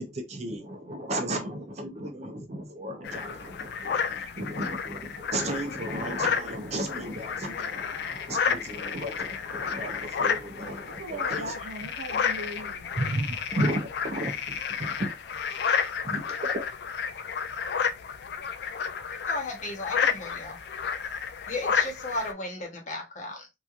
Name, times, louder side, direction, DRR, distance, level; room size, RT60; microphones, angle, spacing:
voice 1, 0.0-11.5 13.0-15.1 16.0-16.6, right 1 dB, 35° right, 0.5 m, -34 dB
sound 1, 3.0-22.3, left 6 dB, 60° left, 0.3 m, -31 dB
voice 2, 10.8-12.9, right 1 dB, 75° right, 0.8 m, -39 dB
voice 3, 19.1-20.6 21.5-23.5, left 2 dB, 40° left, 0.9 m, -35 dB
2.9 x 2.3 x 2.4 m
head